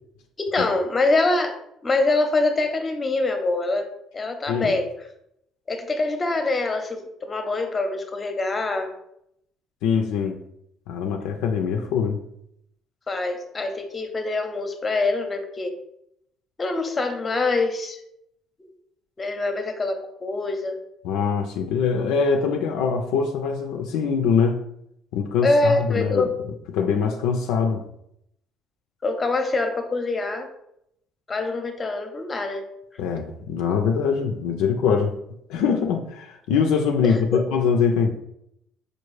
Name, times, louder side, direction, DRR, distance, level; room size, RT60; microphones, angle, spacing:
voice 1, 0.4-1.6 1.8-3.9 4.1-4.9 5.7-8.9 13.1-15.7 16.6-18.0 19.2-20.8 25.4-26.3 29.0-30.5 31.3-32.7 37.0-37.4, left 2 dB, 30° left, 6 dB, 0.7 m, -24 dB
voice 2, 9.8-10.4 10.9-12.2 21.0-24.6 25.1-26.3 26.7-27.8 33.0-35.1 35.5-38.2, left 6 dB, 80° left, 3 dB, 0.4 m, -23 dB
4.6 x 2.3 x 3.1 m, 0.76 s
supercardioid pair, 65°, 0 cm